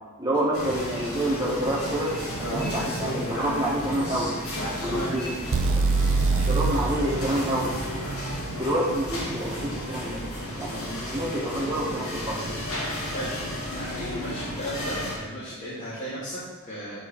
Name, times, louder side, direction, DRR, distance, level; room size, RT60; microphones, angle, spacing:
voice 1, 0.2-4.3 4.8-5.3 5.8-5.9 6.3-7.7 8.5-10.2 10.5-12.4, right 1 dB, 20° right, -4 dB, 1.7 m, -28 dB
sound 1, 0.5-15.1, equal, 85° left, 2.2 m, -33 dB
voice 2, 4.8-5.1 10.6-10.8 12.8-17.1, equal, 35° left, -12 dB, 2.6 m, -36 dB
sound 2, 5.5-9.5, right 3 dB, 60° right, 0.5 m, -26 dB
9.2 x 4.8 x 4.4 m, 1.4 s
head